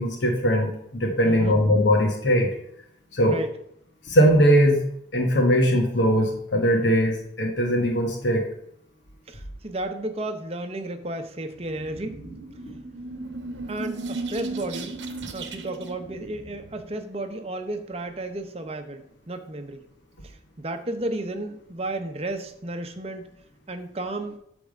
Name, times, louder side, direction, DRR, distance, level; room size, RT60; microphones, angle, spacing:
voice 1, 0.0-2.5 3.1-3.4 4.0-4.8 5.1-8.4, equal, 75° left, 1 dB, 1.4 m, -20 dB
voice 2, 1.2-1.6 3.2-3.6 9.3-12.2 13.7-15.0 15.3-19.8 20.2-23.3 23.7-24.4, right 1 dB, 30° right, 7 dB, 0.7 m, -33 dB
sound 1, 11.5-17.0, right 3 dB, 75° right, 0.9 m, -36 dB
8.5 x 3.5 x 6.5 m, 0.74 s
head